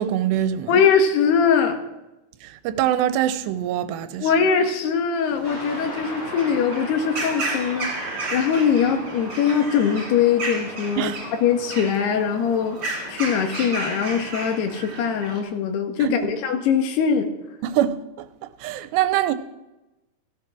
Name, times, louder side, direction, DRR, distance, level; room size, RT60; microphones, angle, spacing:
voice 1, 0.0-0.8 2.4-4.3 11.0-11.2 16.0-16.3 17.6-18.3 18.6-19.3, right 11 dB, 90° right, 3.0 m, -24 dB
voice 2, 0.7-1.8 4.2-7.9 8.3-11.1 11.4-12.8 13.1-17.3, left 7 dB, 75° left, 3.7 m, -21 dB
sound 1, 5.3-15.4, right 2 dB, 35° right, 4.1 m, -33 dB
sound 2, 5.4-14.8, equal, 15° left, 6.7 m, -39 dB
15.5 x 14.5 x 6.2 m
omnidirectional pair, 4.8 m